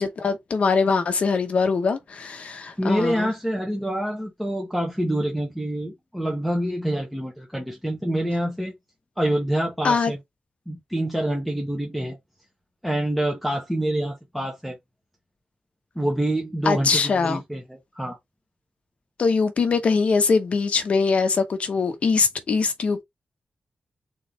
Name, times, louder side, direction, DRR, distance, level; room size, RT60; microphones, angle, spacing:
voice 1, 0.0-3.3 9.8-10.1 16.7-17.4 19.2-23.0, left 4 dB, 55° left, 0.9 m, -22 dB
voice 2, 2.8-8.7 9.2-10.2 10.7-12.2 12.8-14.8 15.9-18.2, right 1 dB, ahead, 1.0 m, -26 dB
4.0 x 3.1 x 4.1 m
wide cardioid pair, 180°, 3 cm